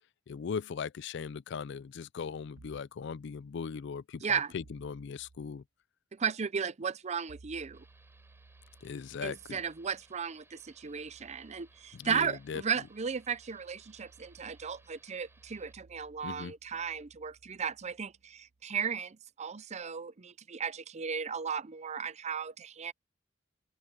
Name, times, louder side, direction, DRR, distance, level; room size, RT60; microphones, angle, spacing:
voice 1, 0.3-5.6 8.8-9.6 11.9-12.6 16.2-16.5, left 6 dB, 65° left, 0.4 m, -39 dB
sound 1, 2.6-3.0 4.6-5.5 7.3-18.6, right 3 dB, 70° right, 0.8 m, -60 dB
voice 2, 4.2-4.5 6.1-7.8 9.2-22.9, right 6 dB, 35° right, 0.6 m, -35 dB
sound 2, 7.7-15.7, right 2 dB, 15° right, 4.6 m, -65 dB
open air
head